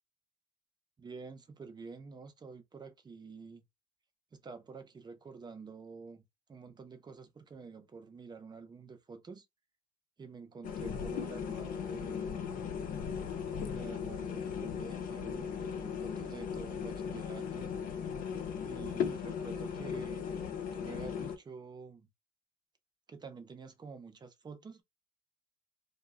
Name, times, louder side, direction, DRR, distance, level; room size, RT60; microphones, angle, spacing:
voice 1, 1.0-3.6 4.3-6.2 6.5-9.5 10.2-12.5 13.6-17.7 18.7-20.4 20.7-22.1 23.1-24.8, right 4 dB, 25° right, 0.6 m, -48 dB
sound 1, 10.6-21.4, left 7 dB, 55° left, 0.5 m, -37 dB
2.2 x 2.0 x 3.4 m
cardioid pair, 110°, 17 cm